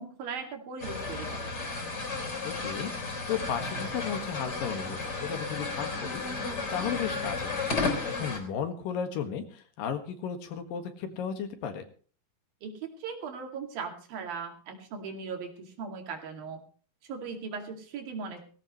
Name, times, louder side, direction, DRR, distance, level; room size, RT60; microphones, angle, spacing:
voice 1, 0.0-1.5 12.6-12.7 13.0-16.6 17.0-18.5, right 5 dB, 90° right, 4 dB, 4.2 m, -38 dB
sound 1, 0.8-8.4, left 3 dB, 30° left, 4.0 m, -33 dB
voice 2, 2.4-2.9 3.3-7.6 8.0-11.8, left 8 dB, 75° left, 7 dB, 3.4 m, -35 dB
18.5 x 16.5 x 3.1 m, 0.40 s
omnidirectional pair, 4.0 m